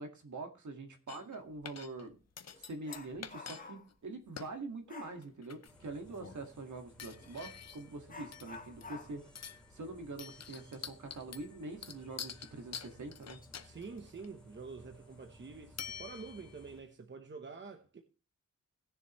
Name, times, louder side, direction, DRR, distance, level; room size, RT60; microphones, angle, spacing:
voice 1, 0.0-2.2 2.5-13.4, right 3 dB, 60° right, 2.0 m, -45 dB
sound 1, 1.1-1.4 1.6-2.1 2.4-3.6 3.9-4.0 4.4-4.5 5.2-5.8 6.2-6.5 7.0-8.0 8.3-9.0 9.3-9.7 10.2-14.3 15.8-16.6, left 7 dB, 50° left, 0.8 m, -47 dB
Dog, 1.5-1.7 2.1-4.0 4.9-5.2 7.2-7.4 8.1-11.4 11.7-11.8 12.3-12.4 13.1-13.5 13.8-14.1, left 4 dB, 25° left, 1.2 m, -52 dB
sound 2, 5.7-16.8, left 1 dB, 5° left, 3.4 m, -59 dB
voice 2, 13.6-18.0, right 4 dB, 35° right, 1.0 m, -47 dB
18.5 x 7.0 x 3.1 m
wide cardioid pair, 180°, 33 cm